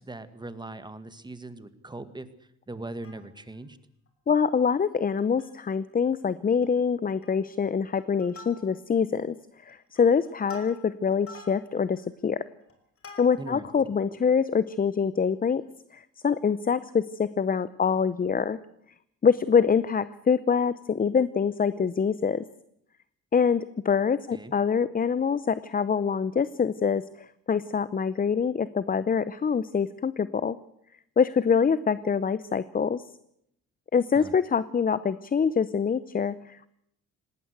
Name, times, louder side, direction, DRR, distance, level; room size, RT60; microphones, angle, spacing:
voice 1, 0.0-2.3 2.7-3.8 13.4-13.9 24.3-24.5 34.2-34.3, right 2 dB, 15° right, 12 dB, 1.8 m, -40 dB
Plucked string instrument, 2.8-3.6 4.1-4.2 4.4-4.6 5.1-5.7 6.0-6.2 6.5-6.9 7.2-7.6 8.0-9.0 9.5-13.7 14.2-14.3, left 3 dB, 50° left, 5.6 m, -49 dB
voice 2, 4.3-9.4 9.6-12.5 13.2-15.6 15.9-18.6 19.2-22.4 23.3-27.0 27.5-30.6 31.2-33.0 33.9-36.7, left 6 dB, 30° left, 16 dB, 0.7 m, -25 dB
19.0 x 18.0 x 8.1 m, 0.74 s
cardioid pair, 90°, 30 cm